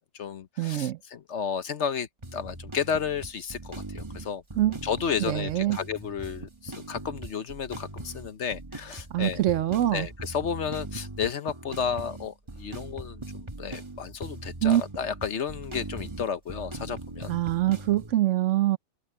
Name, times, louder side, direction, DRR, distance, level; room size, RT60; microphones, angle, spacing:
voice 1, 0.0-4.4 4.8-9.4 9.9-17.3, left 7 dB, 60° left, 1.2 m, -32 dB
voice 2, 0.6-1.0 4.6-4.8 5.3-5.8 9.1-10.1 14.6-14.8 17.3-18.8, right 13 dB, 65° right, 0.9 m, -24 dB
sound 1, 2.2-18.1, right 2 dB, 20° right, 1.7 m, -40 dB
omnidirectional pair, 1.5 m